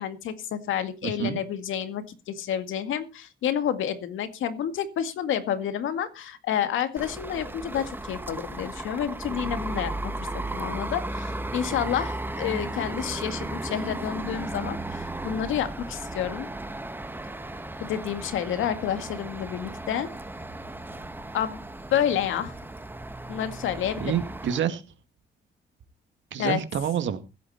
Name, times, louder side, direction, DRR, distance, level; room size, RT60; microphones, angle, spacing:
voice 1, 0.0-10.1 10.5-16.5 17.8-20.1 21.3-21.6 21.9-22.5 23.3-24.1 26.4-26.6, left 9 dB, 80° left, 9 dB, 2.1 m, -29 dB
voice 2, 1.0-1.4 24.0-24.8 26.3-27.2, right 9 dB, 70° right, 9 dB, 2.1 m, -27 dB
sound 1, 7.0-24.6, right 2 dB, 10° right, 1.2 m, -35 dB
16.0 x 10.5 x 4.3 m, 0.31 s
cardioid pair, 90°, 20 cm